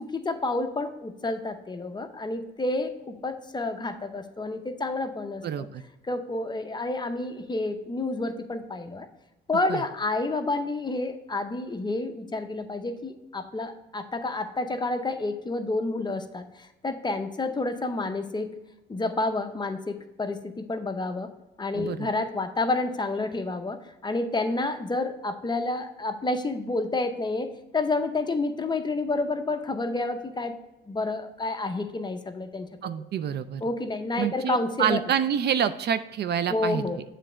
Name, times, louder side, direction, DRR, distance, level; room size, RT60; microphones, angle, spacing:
voice 1, 0.0-5.7 6.0-9.1 9.5-18.5 18.9-21.3 21.6-30.6 30.9-32.7 32.9-33.0 33.6-35.0 36.5-37.0, left 2 dB, 20° left, 7 dB, 0.7 m, -29 dB
voice 2, 5.4-5.8 9.7-9.8 21.7-22.1 32.8-33.6 34.2-36.9, right 8 dB, 55° right, 12 dB, 0.4 m, -27 dB
7.5 x 3.3 x 4.9 m, 0.99 s
cardioid pair, 90°, 20 cm